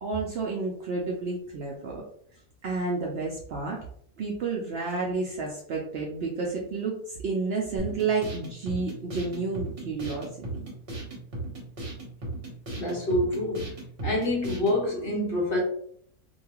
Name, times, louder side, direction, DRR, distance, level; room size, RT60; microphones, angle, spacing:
voice 1, 0.0-2.0 2.6-3.8 4.2-10.3, right 4 dB, 85° right, -2 dB, 0.5 m, -30 dB
sound 1, 7.8-14.8, right 2 dB, 45° right, 1.1 m, -37 dB
voice 2, 12.8-13.7 14.0-15.6, left 1 dB, 45° left, -3 dB, 0.8 m, -26 dB
2.7 x 2.3 x 2.8 m, 0.63 s
omnidirectional pair, 1.7 m